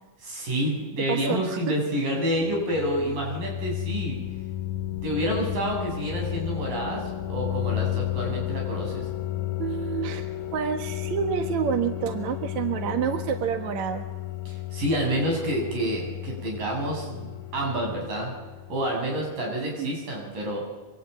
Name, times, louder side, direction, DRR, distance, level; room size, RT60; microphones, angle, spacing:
voice 1, 0.2-4.2 5.0-9.1 14.5-18.3 18.7-20.6, equal, 85° right, 0 dB, 9.6 m, -28 dB
voice 2, 1.1-1.7 9.6-14.1 19.6-19.9, right 8 dB, 65° right, 6 dB, 2.7 m, -28 dB
sound 1, 2.3-19.1, left 13 dB, 70° left, 2.5 m, -33 dB
26.0 x 24.5 x 9.3 m, 1.2 s
omnidirectional pair, 3.7 m